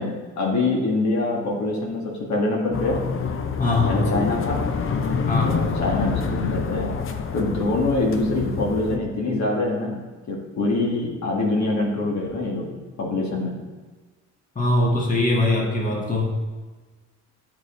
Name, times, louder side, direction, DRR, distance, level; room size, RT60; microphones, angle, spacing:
voice 1, 0.0-3.0 3.8-4.6 5.4-6.9 7.3-13.6, left 2 dB, 65° left, -2 dB, 1.7 m, -25 dB
sound 1, 2.7-9.0, left 5 dB, 45° left, 0.7 m, -27 dB
voice 2, 3.6-4.1 5.3-5.6 14.5-16.3, left 2 dB, 25° left, -1 dB, 1.7 m, -22 dB
8.4 x 4.8 x 4.3 m, 1.3 s
cardioid pair, 90°, 30 cm